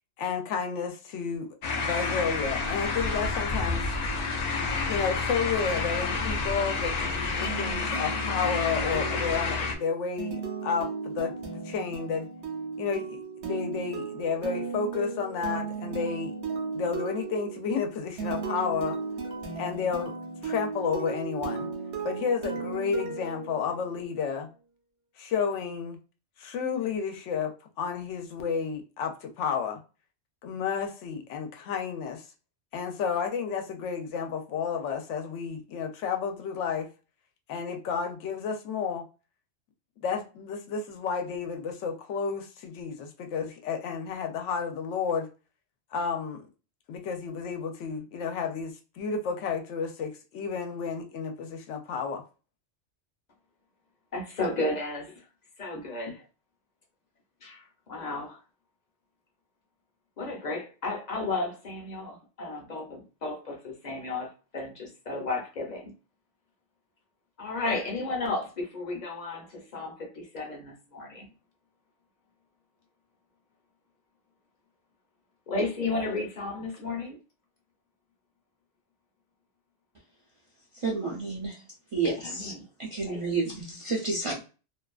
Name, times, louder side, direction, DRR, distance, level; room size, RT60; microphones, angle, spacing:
voice 1, 0.2-3.9 4.9-11.3 11.6-12.3 12.8-16.3 16.7-19.0 19.6-21.7 22.0-24.5 25.2-26.0 26.4-29.8 30.4-32.2 32.7-36.9 37.5-39.1 40.0-45.3 45.9-46.5 46.9-52.2, left 6 dB, 85° left, 0.9 m, -31 dB
sound 1, 1.6-9.7, left 4 dB, 65° left, 0.4 m, -29 dB
sound 2, 7.4-24.1, right 5 dB, 60° right, 0.8 m, -36 dB
voice 2, 54.1-55.2 55.6-56.2 57.4-58.4 60.2-65.9 67.4-71.3 75.5-77.2 82.0-82.6 83.0-83.2, left 2 dB, 40° left, 0.8 m, -33 dB
voice 3, 80.7-81.6 81.9-82.5 82.8-84.4, right 3 dB, 40° right, 0.5 m, -30 dB
2.6 x 2.2 x 2.3 m
omnidirectional pair, 1.2 m